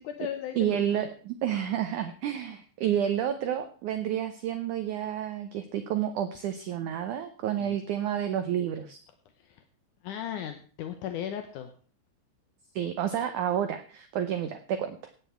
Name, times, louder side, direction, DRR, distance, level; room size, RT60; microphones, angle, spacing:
voice 1, 0.0-1.0 7.6-7.8 9.4-9.6 10.0-11.7, left 10 dB, 75° left, 7 dB, 1.9 m, -37 dB
voice 2, 0.6-9.0 12.7-15.0, right 10 dB, 80° right, 9 dB, 1.8 m, -30 dB
16.0 x 9.3 x 4.5 m, 0.41 s
omnidirectional pair, 4.6 m